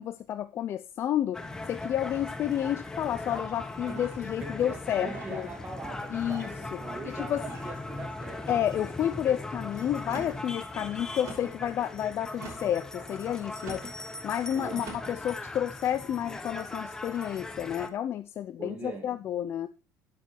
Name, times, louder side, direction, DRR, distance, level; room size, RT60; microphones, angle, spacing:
voice 1, 0.0-1.4 1.7-5.5 6.1-6.5 7.0-7.4 8.5-13.8 14.2-19.7, left 10 dB, 45° left, 0.5 m, -30 dB
sound 1, 1.3-17.9, left 2 dB, 10° left, 0.9 m, -39 dB
sound 2, 3.9-4.3 5.0-5.4 6.1-6.6 7.3-7.7 8.4-8.8 10.0-10.4 11.2-11.6 12.3-12.8 13.6-14.0 14.8-15.2, right 3 dB, 60° right, 5.8 m, -43 dB
voice 2, 4.4-8.6 14.5-14.9 18.6-19.2, right 4 dB, 25° right, 2.6 m, -42 dB
9.3 x 7.5 x 4.5 m
cardioid pair, 140°, 6 cm